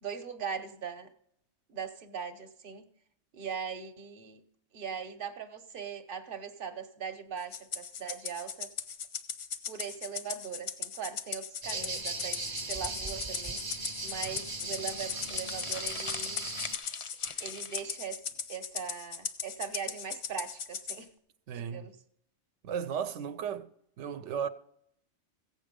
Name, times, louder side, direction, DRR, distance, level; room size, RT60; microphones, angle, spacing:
voice 1, 0.0-1.1 1.7-2.9 3.3-4.4 4.7-8.7 9.7-13.6 14.0-16.4 17.4-18.2 18.5-21.1 21.5-22.0, right 7 dB, 55° right, 0.9 m, -40 dB
Rattle (instrument), 7.5-21.0, left 7 dB, 85° left, 1.1 m, -38 dB
sound 1, 11.6-16.8, right 3 dB, 30° right, 0.5 m, -38 dB
sound 2, 14.2-18.2, left 5 dB, 45° left, 0.4 m, -43 dB
voice 2, 21.5-21.9 22.6-23.7 24.0-24.5, right 7 dB, 90° right, 0.9 m, -35 dB
15.5 x 8.1 x 5.1 m
omnidirectional pair, 1.2 m